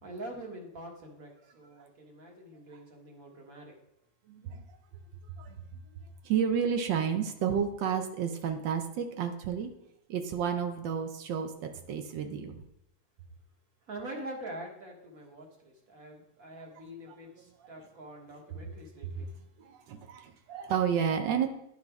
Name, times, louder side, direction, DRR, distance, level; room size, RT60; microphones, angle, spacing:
voice 1, 0.0-3.7 13.9-19.3, right 1 dB, 50° right, 1 dB, 1.8 m, -45 dB
voice 2, 4.3-4.6 5.3-9.7 10.1-12.6 17.1-17.7 18.5-18.7 19.0-19.3 19.6-21.5, right 7 dB, 85° right, 6 dB, 1.4 m, -32 dB
10.5 x 4.9 x 3.5 m, 0.81 s
omnidirectional pair, 2.0 m